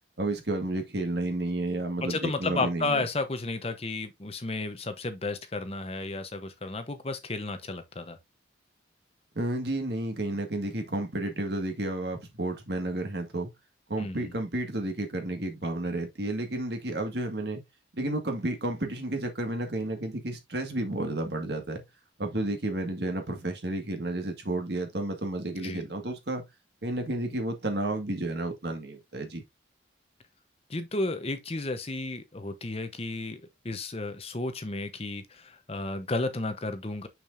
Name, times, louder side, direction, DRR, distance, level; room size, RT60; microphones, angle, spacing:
voice 1, 0.2-3.1 9.4-13.5 13.9-17.6 18.0-21.8 22.2-26.4 26.8-29.4, right 1 dB, 55° right, 1.8 m, -31 dB
voice 2, 2.1-8.2 14.0-14.3 25.6-25.8 30.7-37.1, left 2 dB, 30° left, 0.9 m, -33 dB
6.6 x 6.3 x 2.6 m
head